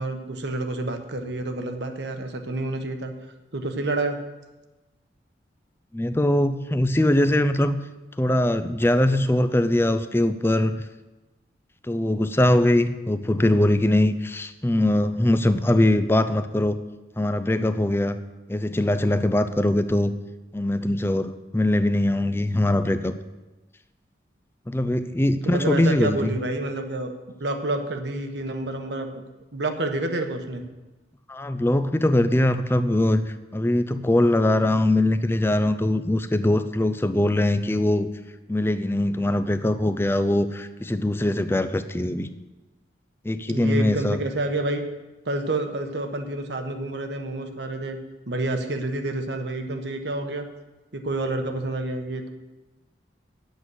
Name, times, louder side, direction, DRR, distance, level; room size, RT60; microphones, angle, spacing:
voice 1, 0.0-3.1 3.5-4.2 25.4-27.1 27.4-29.2 29.5-30.7 43.5-44.9 45.2-48.0 48.3-50.5 50.9-52.3, right 2 dB, 70° right, 6 dB, 1.2 m, -28 dB
voice 2, 5.9-7.8 8.2-10.8 11.8-16.8 17.2-18.2 18.5-20.1 20.5-23.1 24.7-26.3 31.3-38.1 38.5-42.3 43.2-44.2, left 1 dB, 15° left, 11 dB, 0.4 m, -22 dB
9.6 x 8.3 x 6.3 m, 1.1 s
head